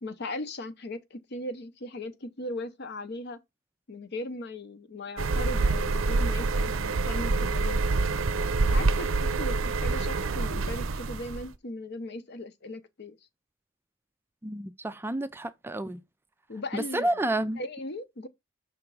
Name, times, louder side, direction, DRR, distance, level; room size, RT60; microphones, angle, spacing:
voice 1, 0.0-3.4 3.9-7.8 8.7-13.2 16.5-17.1 17.6-18.3, left 1 dB, 55° left, 0.8 m, -38 dB
sound 1, 5.2-11.5, right 3 dB, 70° right, 0.6 m, -26 dB
voice 2, 14.4-16.0 16.7-17.6, right 1 dB, 10° right, 0.3 m, -30 dB
6.0 x 3.5 x 4.7 m
head